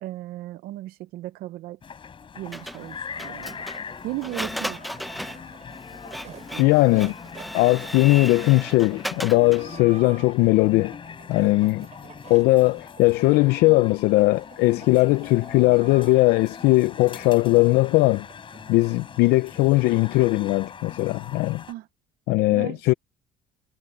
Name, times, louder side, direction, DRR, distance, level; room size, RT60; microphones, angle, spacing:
voice 1, 0.0-1.8 2.3-3.7 4.0-5.0 6.3-6.7 21.7-21.9 22.5-22.9, right 17 dB, 70° right, 0.6 m, -36 dB
sound 1, 1.8-21.7, left 6 dB, 30° left, 6.8 m, -41 dB
Printer, 2.5-9.7, equal, ahead, 0.6 m, -36 dB
sound 2, 3.3-19.0, right 9 dB, 45° right, 5.3 m, -49 dB
voice 2, 6.6-7.1 7.5-10.9 11.3-11.9 12.3-18.3 18.7-21.6 22.3-22.9, left 21 dB, 85° left, 0.6 m, -19 dB
cardioid pair, 130°, 16 cm